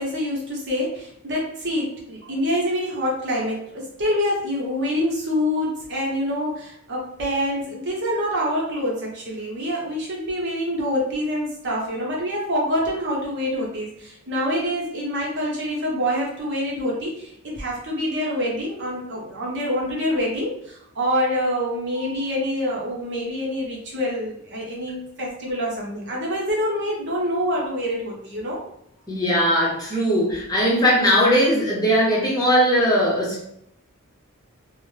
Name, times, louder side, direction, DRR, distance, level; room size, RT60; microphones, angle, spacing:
voice 1, 0.0-28.6, equal, 55° right, -3 dB, 0.9 m, -26 dB
voice 2, 29.1-33.5, equal, 15° left, -5 dB, 0.8 m, -19 dB
2.7 x 2.1 x 3.2 m, 0.75 s
head